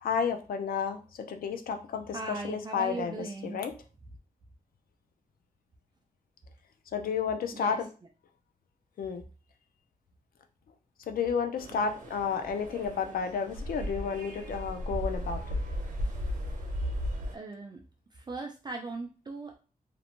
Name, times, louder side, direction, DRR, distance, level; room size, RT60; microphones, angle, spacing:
voice 1, 0.0-3.7 6.9-7.9 9.0-9.2 11.1-15.4, left 6 dB, 90° left, 6 dB, 0.4 m, -31 dB
voice 2, 2.1-3.6 7.5-7.8 11.7-11.9 17.3-17.8 18.1-19.6, right 3 dB, 30° right, 1 dB, 0.3 m, -39 dB
sound 1, 11.6-17.4, equal, 65° right, 0.7 m, -35 dB
2.5 x 2.1 x 2.9 m, 0.35 s
wide cardioid pair, 135°, 15 cm